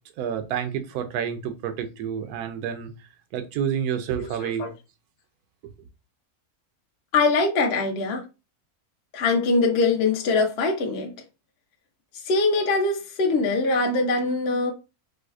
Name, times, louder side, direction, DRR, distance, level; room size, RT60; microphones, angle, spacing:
voice 1, 0.2-2.9 3.3-4.7, right 8 dB, 85° right, 1.1 m, -29 dB
voice 2, 7.1-8.2 9.1-11.1 12.2-14.7, left 3 dB, 55° left, 0.8 m, -22 dB
4.9 x 2.1 x 2.3 m
omnidirectional pair, 1.6 m